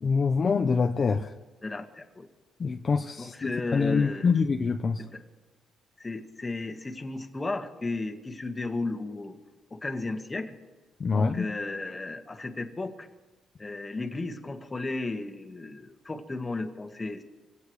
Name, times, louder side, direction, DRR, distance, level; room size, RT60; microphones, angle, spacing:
voice 1, 0.0-1.3 2.6-3.3 3.7-5.0 11.0-11.5, left 5 dB, 40° left, 5 dB, 0.8 m, -25 dB
voice 2, 1.6-2.3 3.2-4.4 5.0-5.2 6.0-9.4 9.7-10.5 11.1-13.1 13.6-17.2, left 2 dB, 20° left, 5 dB, 1.6 m, -34 dB
25.0 x 17.0 x 3.3 m, 1.2 s
cardioid pair, 90°, 0 cm